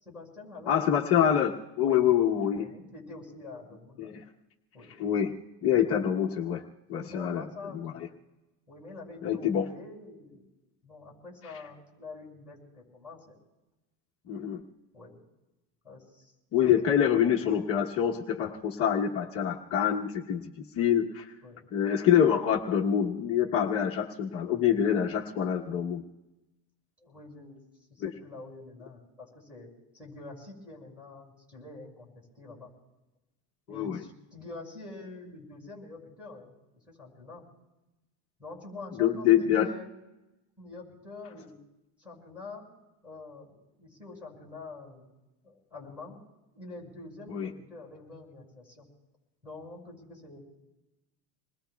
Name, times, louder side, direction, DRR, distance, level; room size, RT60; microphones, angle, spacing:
voice 1, 0.0-0.9 1.8-2.0 2.5-4.1 4.7-4.9 6.9-8.0 8.7-10.4 10.8-13.4 14.9-15.2 15.8-16.3 16.8-16.9 21.4-21.7 27.0-27.6 27.9-32.7 33.7-37.4 38.4-39.9 40.6-41.6 42.0-42.7 43.0-45.1 45.4-46.2 46.5-48.9 49.4-50.4, left 3 dB, 5° right, -3 dB, 5.8 m, -46 dB
voice 2, 0.7-2.7 4.0-4.2 5.0-5.3 5.6-6.6 6.9-7.4 7.7-8.1 9.2-9.7 14.3-14.6 16.5-21.3 21.7-26.0 28.0-28.1 33.7-34.0 38.9-39.7 47.3-47.5, left 9 dB, 30° left, -2 dB, 1.0 m, -26 dB
27.5 x 20.5 x 2.3 m, 1.0 s
cardioid pair, 175°, 48 cm